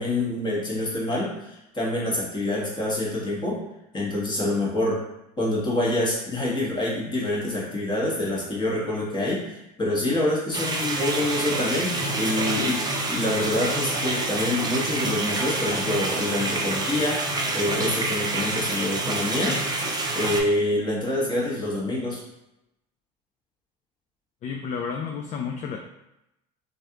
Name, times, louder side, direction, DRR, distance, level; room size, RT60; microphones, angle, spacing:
voice 1, 0.0-3.6 3.9-5.0 5.4-12.8 13.1-19.6 20.1-22.2, left 1 dB, 25° left, -4 dB, 1.3 m, -26 dB
sound 1, 10.5-20.4, right 2 dB, 20° right, 0.6 m, -27 dB
voice 2, 24.4-25.8, left 6 dB, 40° left, 3 dB, 0.4 m, -31 dB
3.1 x 2.5 x 2.9 m, 0.88 s
hypercardioid pair, 80°, 19 cm